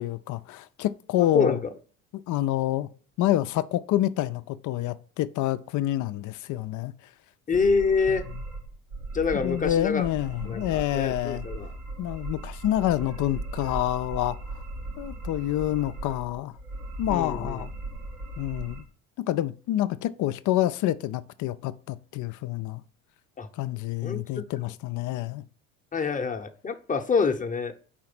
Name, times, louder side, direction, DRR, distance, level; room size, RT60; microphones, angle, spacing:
voice 1, 0.0-1.6 2.1-2.9 3.2-6.9 8.1-8.4 9.3-11.5 12.0-14.4 15.0-16.5 17.0-17.7 18.4-18.8 19.2-22.8 23.5-25.4, left 13 dB, 45° left, 0.5 m, -27 dB
voice 2, 1.2-1.6 7.5-8.3 9.1-10.0 10.5-11.7 17.1-17.6 23.4-23.5 24.0-24.2 25.9-27.7, left 5 dB, 20° left, 0.8 m, -26 dB
sound 1, 7.5-18.8, right 2 dB, 85° right, 1.9 m, -38 dB
4.7 x 4.3 x 5.9 m
hypercardioid pair, 65°, 42 cm